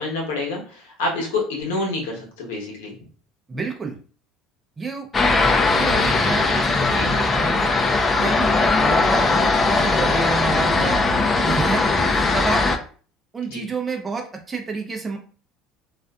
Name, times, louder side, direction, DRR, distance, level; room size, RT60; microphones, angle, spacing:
voice 1, 0.0-2.9 6.9-7.1 13.5-13.6, left 2 dB, 85° left, 0 dB, 1.0 m, -27 dB
voice 2, 3.5-3.9 4.8-5.1 5.3-7.7 8.1-8.5 8.8-11.0 11.4-12.7 13.3-15.2, right 4 dB, 20° right, 2 dB, 0.6 m, -29 dB
sound 1, 5.1-12.8, left 3 dB, 30° left, 0.5 m, -19 dB
2.5 x 2.3 x 2.3 m, 0.41 s
supercardioid pair, 85°, 0 cm